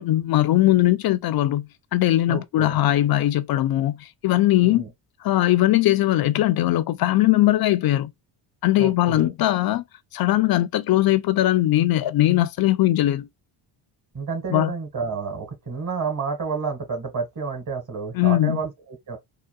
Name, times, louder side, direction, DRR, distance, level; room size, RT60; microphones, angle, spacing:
voice 1, 0.0-4.8 5.2-8.1 8.6-9.8 10.1-13.3 14.5-14.7 18.1-18.6, left 15 dB, 50° left, 0.5 m, -20 dB
voice 2, 2.3-2.8 4.6-4.9 8.8-9.3 14.1-19.2, right 5 dB, 40° right, 1.6 m, -30 dB
3.8 x 2.2 x 2.3 m
supercardioid pair, 70°, 48 cm